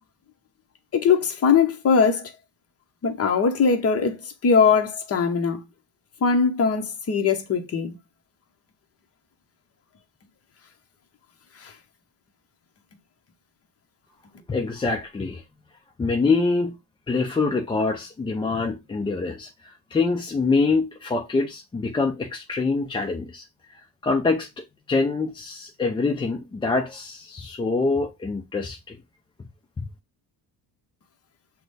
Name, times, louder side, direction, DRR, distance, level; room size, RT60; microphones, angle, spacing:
voice 1, 0.9-2.3 3.0-5.6 6.2-8.0 11.6-11.7, left 5 dB, 35° left, 0.8 m, -21 dB
voice 2, 14.5-15.4 16.0-16.8 17.1-23.4 24.0-29.0, left 3 dB, 15° left, 0.4 m, -25 dB
5.9 x 2.1 x 3.3 m
cardioid pair, 130°, 42 cm